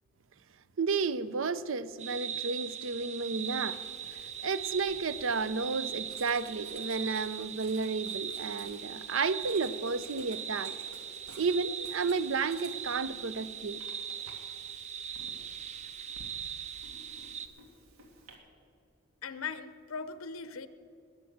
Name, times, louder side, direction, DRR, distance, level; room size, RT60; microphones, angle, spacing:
voice 1, 0.8-3.8 4.4-10.8 11.4-13.8, right 4 dB, 70° right, 0.6 m, -32 dB
sound 1, 2.0-17.5, right 8 dB, 30° right, 0.6 m, -40 dB
Writing, 3.3-18.3, right 3 dB, 85° right, 2.5 m, -56 dB
voice 2, 19.2-20.7, left 5 dB, 80° left, 0.7 m, -39 dB
20.5 x 7.0 x 7.9 m
head